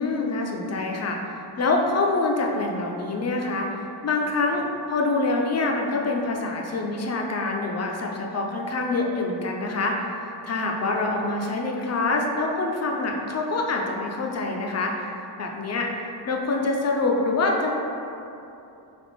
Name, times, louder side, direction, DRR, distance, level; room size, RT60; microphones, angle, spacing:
voice 1, 0.0-3.7 4.0-10.0 10.4-14.9 15.4-15.9 16.3-17.7, left 3 dB, 40° left, 0 dB, 0.4 m, -25 dB
3.5 x 2.5 x 4.0 m, 2.8 s
wide cardioid pair, 140°, 46 cm